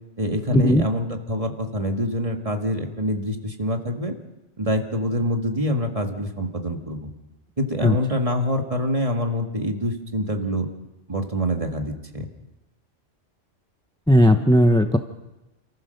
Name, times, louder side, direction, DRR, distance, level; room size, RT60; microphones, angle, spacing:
voice 1, 0.2-4.1 4.6-7.1 7.6-10.7 11.1-12.3, equal, 30° right, 4 dB, 1.8 m, -25 dB
voice 2, 14.1-15.0, equal, 5° left, 7 dB, 0.6 m, -16 dB
27.5 x 14.5 x 6.6 m, 1.0 s
omnidirectional pair, 1.3 m